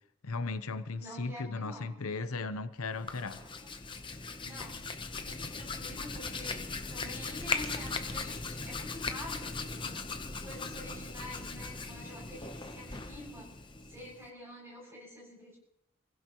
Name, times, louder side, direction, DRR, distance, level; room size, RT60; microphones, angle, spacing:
voice 1, 0.2-3.4, left 3 dB, 90° left, 0.8 m, -36 dB
voice 2, 1.0-2.0 3.0-3.1 3.4-3.7 4.4-4.8 5.2-15.6, left 1 dB, 10° right, 7.3 m, -48 dB
Hands, 2.9-14.3, left 4 dB, 25° left, 0.9 m, -39 dB
27.0 x 16.5 x 3.0 m
head